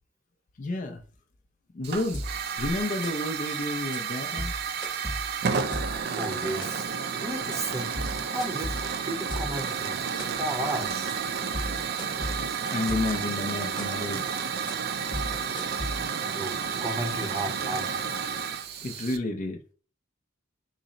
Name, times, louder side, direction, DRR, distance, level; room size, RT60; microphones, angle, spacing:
voice 1, 0.6-1.0 1.7-2.2 2.6-4.6 10.1-10.4 12.7-14.4 18.8-19.6, left 2 dB, 40° left, 0.4 m, -31 dB
Hiss / Fire, 1.8-19.2, right 6 dB, 50° right, 0.4 m, -31 dB
sound 1, 2.1-2.5 2.8-3.4 3.7-4.0 4.3-6.1 6.4-7.0 7.3-7.5 7.9-9.7 10.0-10.6 10.9-11.1 11.4-13.2 13.6-14.1 14.5-14.7 15.0-16.3, left 1 dB, 20° left, 0.9 m, -35 dB
voice 2, 6.1-6.9 7.2-7.9 8.3-10.0 10.3-11.2 16.2-18.0, right 1 dB, 15° right, 0.7 m, -34 dB
3.9 x 2.0 x 3.7 m
head